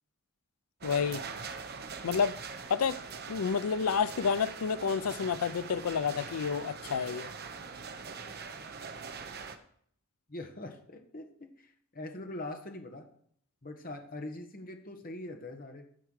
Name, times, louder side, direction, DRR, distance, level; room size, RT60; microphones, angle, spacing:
voice 1, 0.8-1.2 2.0-2.4 2.7-3.0 3.3-7.3, left 6 dB, 85° left, 0.4 m, -30 dB
sound 1, 0.8-9.6, right 5 dB, 45° right, 0.8 m, -42 dB
voice 2, 10.3-13.1 13.6-15.8, left 2 dB, 40° left, 1.3 m, -43 dB
11.5 x 4.6 x 6.4 m
head